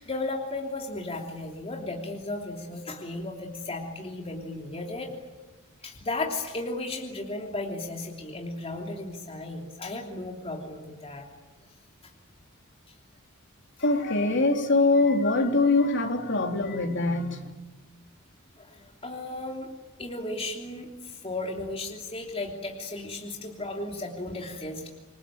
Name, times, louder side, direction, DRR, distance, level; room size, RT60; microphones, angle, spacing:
voice 1, 0.0-5.1 5.8-11.3 12.0-12.1 12.9-13.0 18.5-19.7 20.0-24.9, left 2 dB, 30° left, 1 dB, 3.1 m, -35 dB
voice 2, 13.8-17.5, left 2 dB, 60° left, 3 dB, 3.4 m, -23 dB
27.5 x 23.5 x 9.0 m, 1.2 s
head